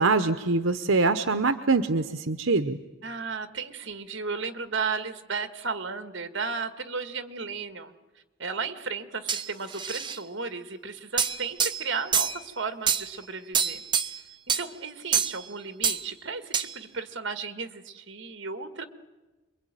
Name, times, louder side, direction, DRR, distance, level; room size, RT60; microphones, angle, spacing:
voice 1, 0.0-2.8, right 3 dB, 80° right, 9 dB, 1.0 m, -24 dB
voice 2, 3.0-7.9 8.4-13.8 14.6-18.8, right 5 dB, 60° right, 9 dB, 1.9 m, -34 dB
sound 1, 9.3-10.2 11.2-12.4 12.9-13.1 13.5-14.2 14.5-14.7 15.1-15.5 15.8-16.1 16.5-16.8, right 7 dB, 25° right, 1.0 m, -26 dB
27.0 x 22.5 x 9.1 m, 1.2 s
head